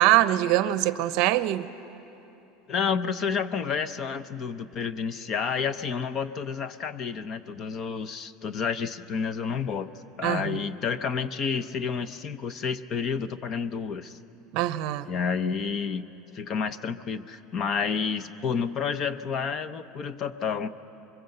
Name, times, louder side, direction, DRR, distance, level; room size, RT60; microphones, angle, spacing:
voice 1, 0.0-1.7 10.2-10.7 14.5-15.1, right 14 dB, 55° right, 14 dB, 0.7 m, -23 dB
voice 2, 2.7-9.9 10.2-14.2 15.1-16.1 16.3-20.7, left 6 dB, 35° left, 13 dB, 0.7 m, -30 dB
24.0 x 22.5 x 7.9 m, 2.9 s
supercardioid pair, 155°, 0 cm